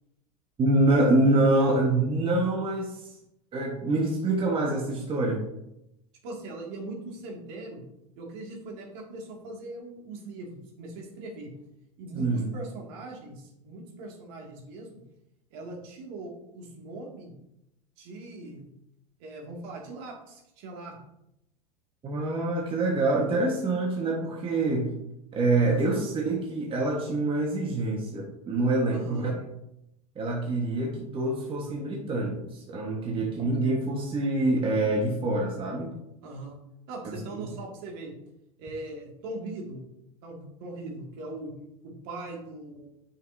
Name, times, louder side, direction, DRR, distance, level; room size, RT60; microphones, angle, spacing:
voice 1, 0.6-3.0 3.5-5.4 12.1-12.5 22.0-24.9 25.3-29.4 30.1-35.9 37.0-37.5, right 2 dB, 30° right, -1 dB, 1.4 m, -26 dB
voice 2, 6.2-7.8 8.2-11.5 12.0-14.9 15.5-17.3 18.0-18.7 19.2-21.0 25.5-26.0 28.9-29.3 33.1-33.5 36.2-36.6 36.9-38.1 38.6-39.8 40.2-41.5 41.8-42.9, right 2 dB, 60° right, -1 dB, 2.2 m, -40 dB
9.2 x 5.8 x 2.7 m, 0.84 s
hypercardioid pair, 85°, 19 cm